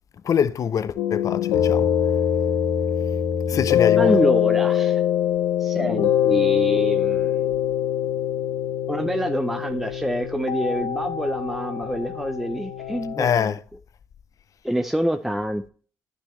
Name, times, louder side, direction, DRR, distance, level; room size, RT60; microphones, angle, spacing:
voice 1, 0.2-1.9 3.5-4.2 13.2-13.6, left 8 dB, 55° left, 0.5 m, -24 dB
sound 1, 1.0-13.3, left 10 dB, 90° left, 0.7 m, -23 dB
voice 2, 4.0-5.0 5.6-7.6 8.9-13.6 14.6-15.7, equal, 5° right, 0.5 m, -26 dB
9.8 x 6.2 x 3.1 m
supercardioid pair, 65°, 7 cm